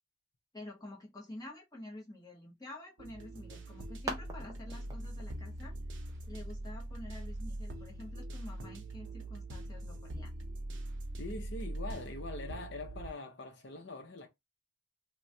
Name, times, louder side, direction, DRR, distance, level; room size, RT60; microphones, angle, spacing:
voice 1, 0.5-5.7 6.3-10.3, left 1 dB, 20° left, 0.8 m, -49 dB
sound 1, 3.0-13.1, right 1 dB, 70° right, 0.7 m, -42 dB
sound 2, 3.1-8.3, right 2 dB, 15° right, 0.5 m, -48 dB
voice 2, 11.2-14.3, left 2 dB, 60° left, 0.7 m, -43 dB
3.0 x 2.2 x 2.7 m
head